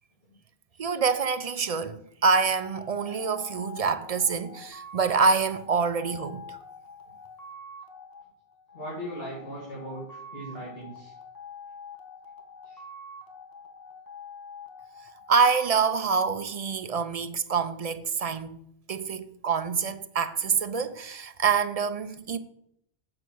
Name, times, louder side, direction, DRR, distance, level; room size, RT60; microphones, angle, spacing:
voice 1, 0.8-6.6 15.3-22.4, right 5 dB, 50° right, 0.5 m, -26 dB
sound 1, 2.5-17.0, left 3 dB, 20° left, 1.2 m, -46 dB
voice 2, 8.7-11.1 12.6-12.8, equal, 65° left, 2.7 m, -38 dB
7.7 x 5.8 x 6.2 m
omnidirectional pair, 1.1 m